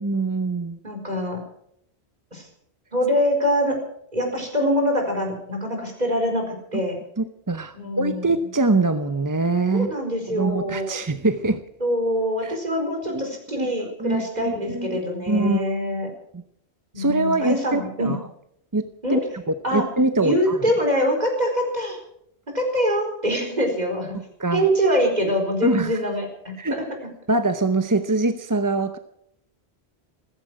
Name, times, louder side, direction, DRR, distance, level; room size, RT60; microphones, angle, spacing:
voice 1, 0.0-0.8 7.2-9.9 10.3-11.6 12.4-12.6 13.1-13.7 14.0-15.0 15.3-15.6 16.3-16.4 17.0-18.2 18.7-19.2 19.5-20.7 24.4-24.7 25.6-26.0 26.6-26.8 27.3-29.0, right 2 dB, 20° right, 10 dB, 0.7 m, -23 dB
voice 2, 0.8-1.4 2.3-2.5 2.9-3.8 4.1-7.0 7.7-8.3 9.7-11.0 11.8-16.1 16.9-18.1 19.0-19.2 19.6-19.9 20.2-22.0 22.5-24.2 24.5-26.8, equal, 40° right, 3 dB, 4.6 m, -24 dB
15.5 x 14.5 x 6.3 m, 0.71 s
omnidirectional pair, 1.1 m